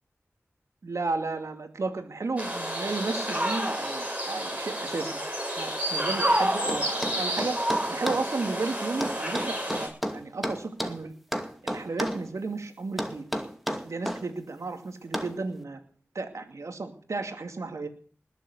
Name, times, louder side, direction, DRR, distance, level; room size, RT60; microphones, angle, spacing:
voice 1, 0.8-5.2 5.6-7.6 7.9-11.1 11.6-13.3 13.8-15.8 16.1-17.9, right 3 dB, 80° right, 7 dB, 2.4 m, -33 dB
sound 1, 2.4-9.9, right 1 dB, 25° right, 7.0 m, -29 dB
sound 2, 6.7-8.3 9.0-11.0 11.3-12.2 13.0-14.2 15.1-15.4, equal, ahead, 2.3 m, -31 dB
20.0 x 7.4 x 8.2 m, 0.43 s
wide cardioid pair, 50°, 5 cm